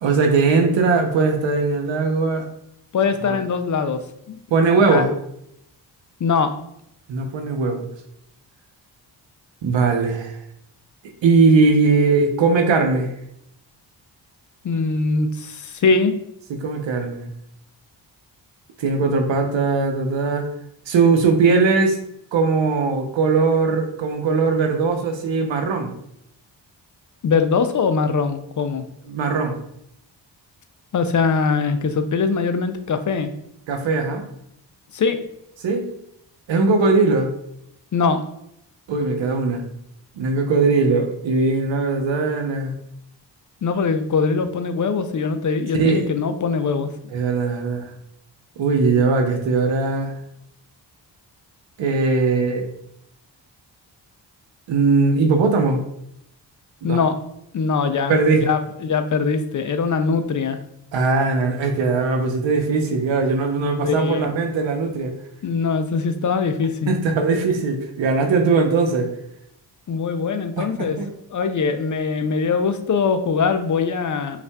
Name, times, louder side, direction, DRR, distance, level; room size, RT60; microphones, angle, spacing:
voice 1, 0.0-2.5 3.3-3.4 4.5-5.1 7.1-7.9 9.6-10.4 11.2-13.1 16.5-17.3 18.8-20.5 20.9-22.0 22.3-25.9 29.1-29.5 33.7-34.3 35.6-35.8 36.5-37.3 38.9-39.6 40.2-42.7 45.8-46.1 47.1-47.9 48.6-50.2 51.8-52.7 54.7-55.8 56.8-57.0 58.1-58.5 60.9-65.1 66.9-69.1 70.6-71.1, right 4 dB, 75° right, 5 dB, 0.8 m, -19 dB
voice 2, 2.9-4.4 4.7-5.1 6.2-6.5 14.6-16.2 27.2-28.9 30.9-33.3 34.9-35.2 37.9-38.2 43.6-46.9 56.8-57.2 57.5-60.6 63.8-64.3 65.4-66.9 69.9-71.0 71.3-74.4, left 5 dB, 45° left, 8 dB, 0.5 m, -22 dB
5.3 x 2.4 x 2.2 m, 0.76 s
cardioid pair, 50°, 45 cm